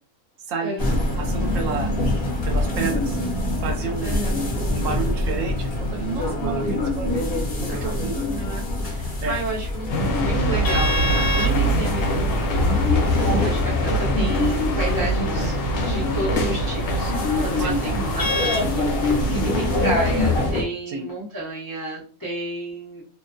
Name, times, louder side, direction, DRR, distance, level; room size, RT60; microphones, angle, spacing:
voice 1, 0.5-1.9 2.4-3.2 3.6-4.4 4.7-7.2 7.6-8.3 9.2-9.4 17.6-17.8 19.1-19.6 20.9-21.1, right 4 dB, 75° right, 4 dB, 0.9 m, -30 dB
sound 1, 0.8-20.6, left 2 dB, 55° left, 0.8 m, -25 dB
voice 2, 4.0-4.4 8.3-23.0, right 1 dB, 30° left, -6 dB, 0.4 m, -32 dB
sound 2, 9.9-20.5, equal, 70° left, 1.0 m, -24 dB
2.6 x 2.2 x 2.4 m, 0.41 s
omnidirectional pair, 1.5 m